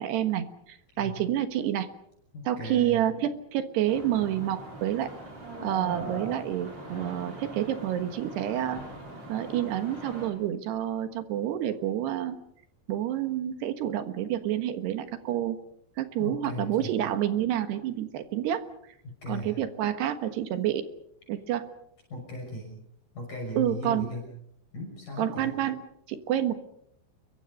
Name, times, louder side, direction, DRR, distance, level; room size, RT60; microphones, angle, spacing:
voice 1, 0.0-1.9 2.5-5.1 5.6-8.8 9.3-12.4 12.9-15.6 16.0-18.7 19.3-20.9 21.3-21.6 23.6-24.1 25.2-25.8 26.1-26.5, right 11 dB, 70° right, 9 dB, 3.3 m, -28 dB
voice 2, 2.3-3.0 16.2-17.0 19.0-19.6 22.1-22.8 23.1-24.3 24.7-25.5, left 1 dB, 45° left, -1 dB, 7.5 m, -37 dB
sound 1, 3.9-10.3, right 2 dB, 35° right, 7.0 m, -41 dB
29.0 x 23.0 x 5.5 m, 0.72 s
omnidirectional pair, 5.3 m